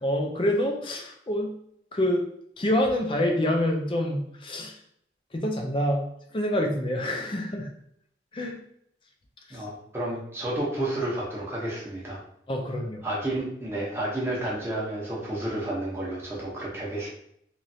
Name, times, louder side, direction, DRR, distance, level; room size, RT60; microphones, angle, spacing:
voice 1, 0.0-1.5 1.9-2.2 2.6-4.8 5.3-7.7 8.3-8.6 9.5-9.7 12.5-13.1, left 1 dB, 30° left, 2 dB, 0.4 m, -27 dB
voice 2, 9.5-12.2 13.0-17.1, right 1 dB, 15° right, -5 dB, 0.8 m, -31 dB
3.1 x 2.5 x 2.7 m, 0.71 s
head